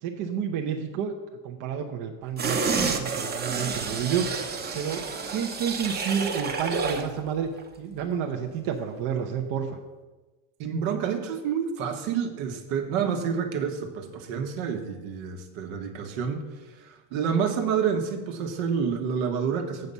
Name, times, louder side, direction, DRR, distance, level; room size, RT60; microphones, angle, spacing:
voice 1, 0.0-1.1 1.4-4.4 4.7-5.0 5.3-7.5 7.8-9.8, right 7 dB, 50° right, 1 dB, 0.9 m, -30 dB
sound 1, 2.4-7.1 7.5-7.6, right 4 dB, 25° right, 0.9 m, -29 dB
voice 2, 10.6-19.9, right 7 dB, 70° right, 4 dB, 1.5 m, -29 dB
7.9 x 6.9 x 5.5 m, 1.2 s
supercardioid pair, 130°, 42 cm